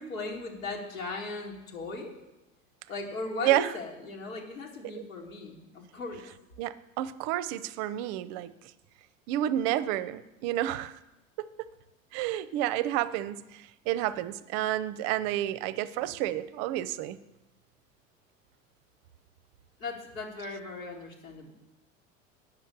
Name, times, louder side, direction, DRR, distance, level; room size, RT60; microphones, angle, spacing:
voice 1, 0.0-2.2 2.9-6.2 19.8-21.5, left 3 dB, 80° left, -1 dB, 2.4 m, -38 dB
voice 2, 3.4-3.7 6.6-8.5 9.3-10.9 12.1-13.4 13.9-17.2, right 13 dB, 50° right, 16 dB, 0.6 m, -30 dB
8.5 x 6.4 x 8.2 m, 0.95 s
figure-of-eight pair, 80°, 40 cm